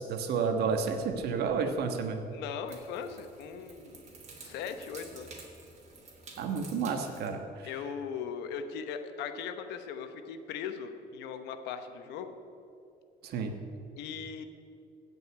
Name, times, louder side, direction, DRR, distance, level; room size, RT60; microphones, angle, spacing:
voice 1, 0.0-2.2 6.4-7.4 13.2-13.6, right 5 dB, 70° right, 5 dB, 1.4 m, -30 dB
sound 1, 0.7-7.3, right 3 dB, 40° right, 2.6 m, -51 dB
voice 2, 2.3-4.0 4.4-5.3 7.6-12.4 14.0-14.4, left 7 dB, 90° left, 8 dB, 1.0 m, -39 dB
16.0 x 5.4 x 8.6 m, 2.6 s
cardioid pair, 110°, 17 cm